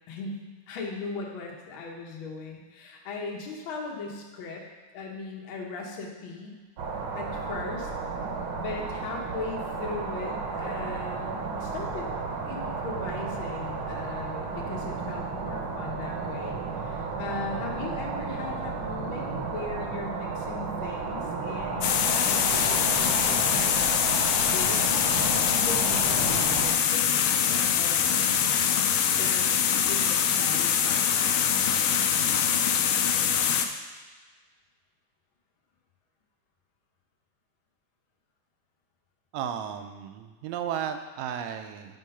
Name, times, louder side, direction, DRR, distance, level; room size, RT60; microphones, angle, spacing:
voice 1, 0.1-0.4 0.7-4.6 4.9-6.6 7.1-7.9 8.5-12.1 12.5-24.1 24.4-24.8 25.5-27.0 27.5-28.3 29.1-29.4 29.9-31.4, left 4 dB, 60° left, -1 dB, 1.4 m, -38 dB
sound 1, 6.8-26.7, right 4 dB, 65° right, 1.4 m, -33 dB
sound 2, 21.8-33.7, left 8 dB, 85° left, 1.3 m, -24 dB
voice 2, 39.3-42.0, right 8 dB, 80° right, 7 dB, 1.7 m, -34 dB
8.4 x 3.7 x 5.5 m, 1.4 s
omnidirectional pair, 3.3 m